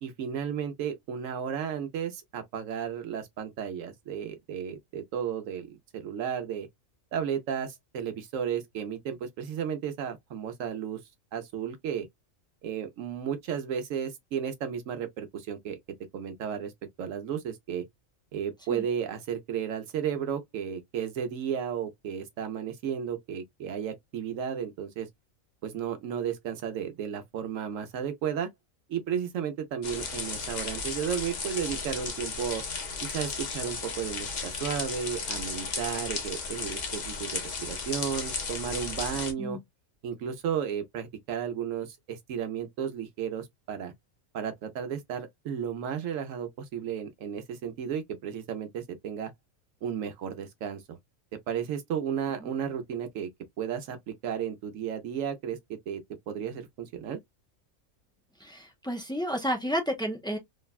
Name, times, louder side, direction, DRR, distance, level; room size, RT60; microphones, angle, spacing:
voice 1, 0.0-6.7 7.1-11.0 11.3-12.1 12.6-15.8 16.1-16.7 17.0-17.8 18.3-25.1 25.6-28.5 28.9-32.6 33.0-39.6 40.0-43.9 44.3-49.3 49.8-51.0 51.5-53.3 53.6-56.0 56.3-57.2, right 8 dB, 80° right, 1.1 m, -33 dB
sound 1, 29.8-39.3, left 4 dB, 45° left, 0.6 m, -35 dB
voice 2, 58.4-60.4, equal, 5° left, 0.3 m, -31 dB
3.2 x 2.1 x 2.3 m
omnidirectional pair, 1.4 m